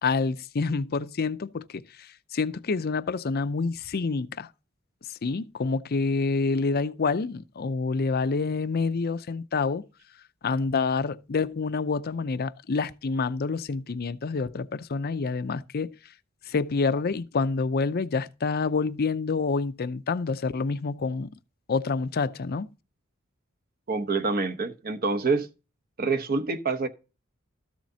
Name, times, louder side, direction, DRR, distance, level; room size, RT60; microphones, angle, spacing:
voice 1, 0.0-4.5 5.2-9.9 10.4-16.0 16.5-21.3 21.7-22.7, left 4 dB, 50° left, 0.5 m, -27 dB
voice 2, 23.9-25.5 26.0-26.9, right 4 dB, 45° right, 0.9 m, -26 dB
13.5 x 7.3 x 2.7 m
head